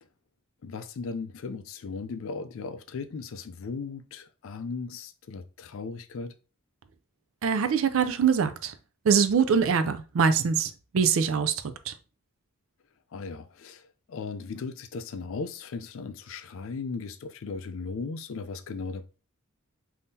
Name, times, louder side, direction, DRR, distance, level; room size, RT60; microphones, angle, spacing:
voice 1, 0.6-6.3 13.1-19.2, left 4 dB, 65° left, 0.4 m, -37 dB
voice 2, 7.4-8.7 9.0-11.9, right 6 dB, 65° right, 0.4 m, -24 dB
3.6 x 2.7 x 2.6 m
head